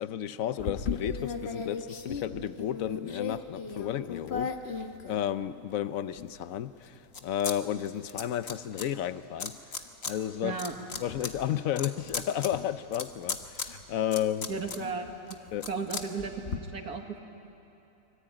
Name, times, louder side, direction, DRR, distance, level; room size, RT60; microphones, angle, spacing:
voice 1, 0.0-9.6 10.0-10.6 11.0-14.5 15.5-15.7, left 10 dB, 65° left, 13 dB, 1.1 m, -32 dB
sound 1, 0.6-5.7 6.2-7.6 7.8-8.9 9.4-10.1 10.5-16.6, left 5 dB, 45° left, 1.5 m, -37 dB
Mallet percussion, 1.0-4.5, right 1 dB, 20° left, 2.7 m, -50 dB
voice 2, 10.4-10.8 14.5-15.4 15.7-16.3 16.7-17.3, right 4 dB, 70° right, 4 dB, 2.4 m, -35 dB
25.5 x 24.0 x 8.9 m, 2.9 s
omnidirectional pair, 1.7 m